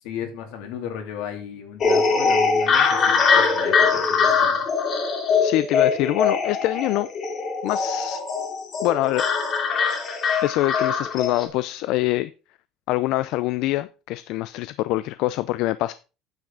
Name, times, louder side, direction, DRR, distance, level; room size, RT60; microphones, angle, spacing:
voice 1, 0.0-4.6, left 8 dB, 80° left, 2.8 m, -35 dB
sound 1, 1.8-11.5, left 5 dB, 35° left, 2.3 m, -22 dB
voice 2, 5.4-7.1 7.6-8.2 8.8-9.3 10.4-12.3 12.9-15.9, left 17 dB, 60° left, 0.4 m, -24 dB
9.1 x 7.8 x 3.8 m
cardioid pair, 170°, 0 cm